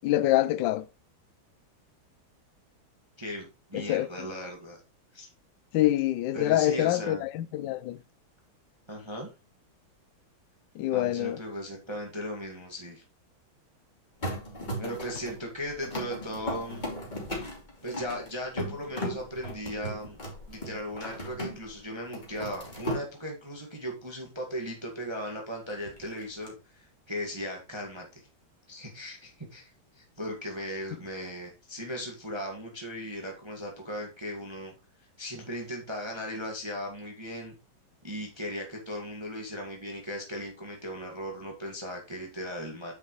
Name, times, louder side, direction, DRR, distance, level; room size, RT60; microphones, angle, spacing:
voice 1, 0.0-0.8 3.7-4.1 5.7-8.0 10.8-11.4, left 14 dB, 75° left, 1.2 m, -26 dB
voice 2, 3.7-4.8 5.1-5.3 6.3-7.2 8.9-9.3 10.9-13.0 14.8-16.8 17.8-20.2 20.5-28.3 28.7-34.7 35.0-37.5 38.0-42.9, equal, 15° right, 1.9 m, -37 dB
sound 1, 14.2-21.8 22.0-23.0 25.7-26.5, equal, 20° left, 2.8 m, -37 dB
9.6 x 6.4 x 3.1 m
omnidirectional pair, 2.2 m